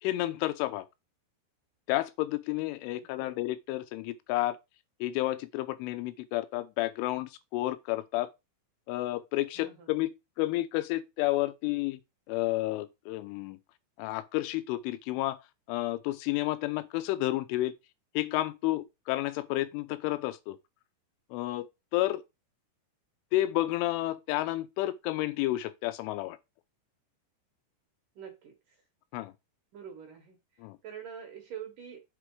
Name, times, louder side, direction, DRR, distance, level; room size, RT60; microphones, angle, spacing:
voice 1, 0.0-0.9 1.9-4.6 5.0-8.3 8.9-10.1 10.4-12.0 12.3-13.6 14.0-15.4 15.7-17.7 18.1-20.6 21.3-22.2 23.3-26.4 29.1-29.3 30.6-30.8, left 17 dB, 90° left, 3.2 m, -31 dB
voice 2, 2.9-3.3 9.6-9.9 28.2-28.8 29.7-32.0, right 8 dB, 60° right, 2.3 m, -46 dB
7.3 x 4.4 x 4.7 m
omnidirectional pair, 5.4 m